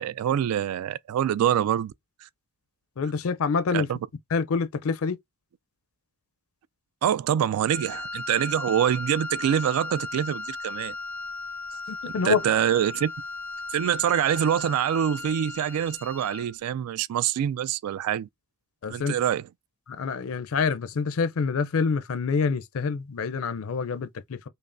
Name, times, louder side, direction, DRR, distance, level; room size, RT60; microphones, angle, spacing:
voice 1, 0.0-1.9 2.2-2.3 3.7-4.0 7.0-10.9 12.2-13.1 13.7-18.3 18.9-19.5, right 9 dB, 85° right, 0.3 m, -25 dB
voice 2, 3.0-3.9 4.3-5.2 11.9-12.4 18.8-19.2 19.9-24.5, left 5 dB, 65° left, 0.4 m, -27 dB
Wind instrument woodwind instrument, 7.6-16.5, left 3 dB, 5° left, 0.4 m, -36 dB
5.3 x 2.0 x 2.5 m
head